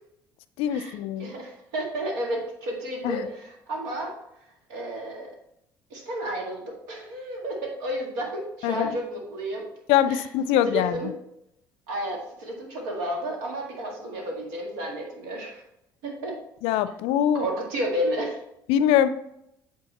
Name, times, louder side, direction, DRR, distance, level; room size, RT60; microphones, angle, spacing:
voice 1, 0.6-1.3 3.0-3.3 8.6-9.0 9.9-11.1 16.6-17.5 18.7-19.1, left 10 dB, 70° left, 14 dB, 0.4 m, -23 dB
voice 2, 1.2-3.3 3.7-4.1 4.7-5.3 5.9-9.7 10.1-10.2 10.7-11.1 11.9-15.6 16.0-16.3 17.3-18.4, right 1 dB, 75° right, 0 dB, 1.9 m, -31 dB
8.8 x 3.7 x 4.2 m, 0.78 s
hypercardioid pair, 60°, 10 cm